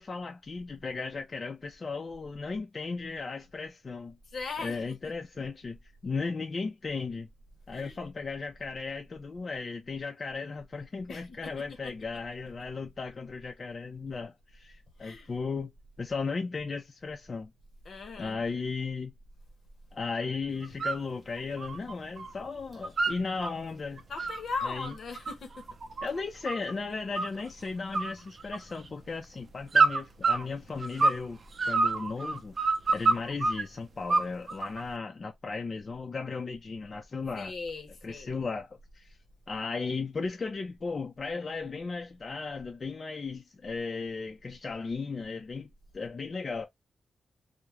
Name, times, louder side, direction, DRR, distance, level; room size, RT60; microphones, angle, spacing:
voice 1, 0.0-4.2 4.6-5.8 6.0-7.3 7.7-15.7 16.0-17.5 18.2-19.1 19.9-24.0 24.6-24.9 26.0-32.6 32.9-37.5 38.0-39.2 39.5-45.7 45.9-46.7, left 4 dB, 50° left, 0.4 m, -36 dB
voice 2, 4.3-5.1 7.7-8.1 11.1-12.2 15.0-15.3 17.8-18.4 24.1-25.7 37.4-38.4, left 4 dB, 70° left, 0.8 m, -39 dB
sound 1, 20.6-21.0 21.4-22.3 22.6-23.5 24.0-26.7 27.1-27.6 27.9-28.9 29.7-31.3 31.6-33.6 34.1-34.8, right 3 dB, 55° right, 0.5 m, -27 dB
2.3 x 2.1 x 2.9 m
cardioid pair, 60°, 0 cm